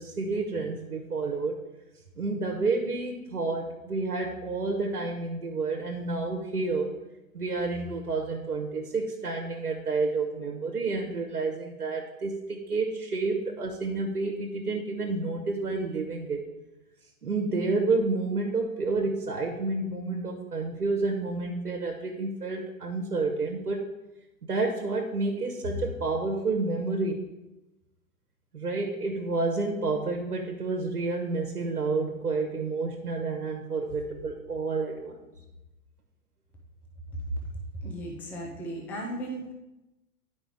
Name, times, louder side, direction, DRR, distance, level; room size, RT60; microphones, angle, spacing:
voice 1, 0.0-1.6 2.1-6.9 7.3-16.4 17.2-23.8 24.5-27.2 28.5-35.2, right 3 dB, 80° right, 2 dB, 1.3 m, -29 dB
voice 2, 37.8-39.5, right 1 dB, 5° left, -1 dB, 0.4 m, -36 dB
10.0 x 5.0 x 3.6 m, 0.98 s
figure-of-eight pair, 105°, 44 cm